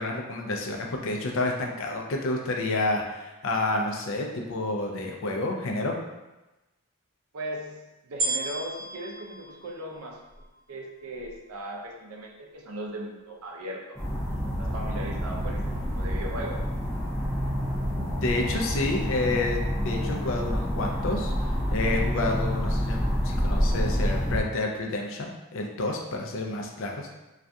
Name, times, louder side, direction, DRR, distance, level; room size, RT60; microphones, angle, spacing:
voice 1, 0.0-6.0 18.0-19.6 19.8-27.1, left 2 dB, 60° left, 1 dB, 0.4 m, -29 dB
voice 2, 7.3-10.2 10.7-14.0 14.6-16.7, right 1 dB, 75° right, 0 dB, 0.4 m, -38 dB
sound 1, 8.2-10.6 11.2-11.3, right 2 dB, 40° right, 0.8 m, -33 dB
sound 2, 13.9-24.4, equal, ahead, 0.6 m, -28 dB
2.3 x 2.2 x 2.6 m, 1.0 s
head